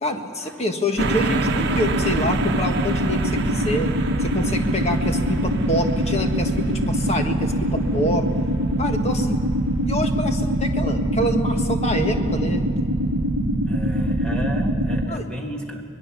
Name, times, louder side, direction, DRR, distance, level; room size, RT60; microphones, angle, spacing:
voice 1, 0.0-3.9 4.2-8.2 8.8-9.5 9.8-12.6 15.1-15.3, left 1 dB, 30° left, 5 dB, 1.6 m, -26 dB
sound 1, 1.0-15.1, right 1 dB, 50° right, 1.2 m, -23 dB
voice 2, 13.7-15.9, equal, 5° left, 1 dB, 2.1 m, -32 dB
24.5 x 20.5 x 7.3 m, 2.7 s
head